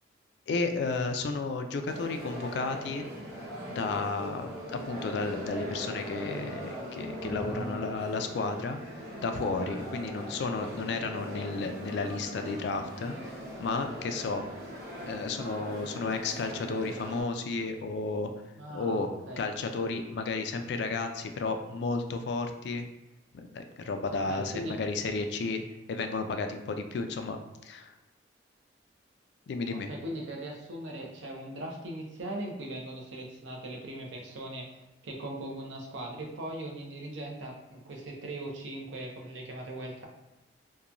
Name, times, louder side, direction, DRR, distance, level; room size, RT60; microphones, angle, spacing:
voice 1, 0.5-3.1 3.7-8.8 9.2-14.5 15.0-18.3 18.7-19.1 19.4-22.9 23.3-25.6 25.9-27.9 29.5-29.9, left 3 dB, 65° left, 6 dB, 0.3 m, -32 dB
sound 1, 1.8-17.2, equal, 55° right, 1.1 m, -40 dB
voice 2, 18.6-19.4 24.1-24.8 29.7-40.1, right 1 dB, 75° right, -1 dB, 0.6 m, -39 dB
2.9 x 2.2 x 2.4 m, 1.0 s
head